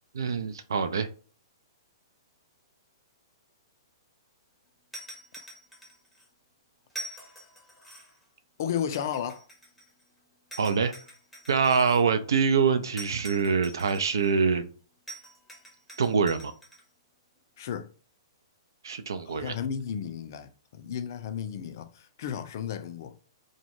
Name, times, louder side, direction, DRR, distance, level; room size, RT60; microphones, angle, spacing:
voice 1, 0.2-1.1 10.6-10.9 11.5-14.7 16.0-16.5 18.8-19.6, right 5 dB, 65° right, 0.3 m, -25 dB
sound 1, 4.9-6.2 6.9-8.2 8.9-10.0 10.5-12.0 13.0-14.3 15.1-16.8, right 1 dB, ahead, 0.7 m, -45 dB
voice 2, 8.6-9.4 17.6-17.9 19.3-20.5 20.8-23.2, left 8 dB, 50° left, 0.3 m, -33 dB
2.2 x 2.1 x 2.9 m
figure-of-eight pair, 115°, 2 cm